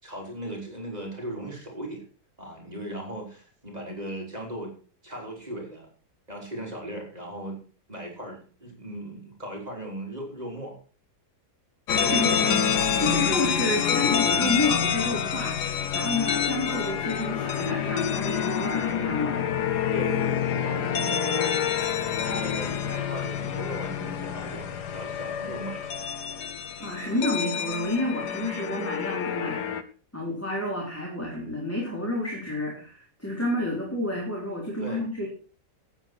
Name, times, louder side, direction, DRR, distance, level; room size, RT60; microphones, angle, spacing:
voice 1, 0.0-2.0 2.4-4.7 5.0-5.9 6.3-7.6 7.9-10.8 11.9-12.6 13.1-13.3 14.0-14.3 19.9-26.0 34.8-35.0, right 1 dB, 25° right, -1 dB, 4.1 m, -38 dB
sound 1, 11.9-29.8, left 8 dB, 80° left, 1.6 m, -27 dB
voice 2, 12.1-12.4 13.0-19.5 26.8-29.9 30.1-35.3, left 2 dB, 10° left, -2 dB, 3.9 m, -30 dB
12.5 x 9.2 x 6.2 m, 0.40 s
omnidirectional pair, 1.7 m